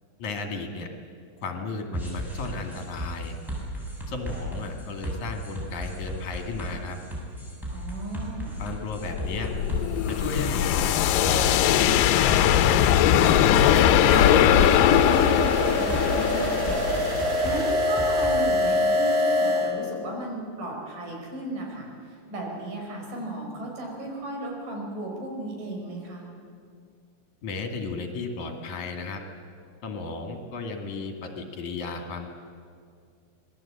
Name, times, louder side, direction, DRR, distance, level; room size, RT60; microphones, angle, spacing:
voice 1, 0.2-0.9 1.4-3.4 4.1-7.0 8.6-9.5 10.1-14.5 27.4-29.2 29.8-32.3, left 3 dB, 65° left, 4 dB, 3.6 m, -34 dB
sound 1, 1.9-18.4, equal, ahead, 6.8 m, -35 dB
voice 2, 7.7-8.6 15.7-17.0 17.4-26.3, right 1 dB, 85° right, 0 dB, 6.6 m, -35 dB
sound 2, 8.9-17.8, left 11 dB, 85° left, 2.4 m, -21 dB
sound 3, 13.5-19.7, left 1 dB, 65° right, 5.0 m, -25 dB
26.5 x 20.0 x 8.8 m, 2.3 s
omnidirectional pair, 3.7 m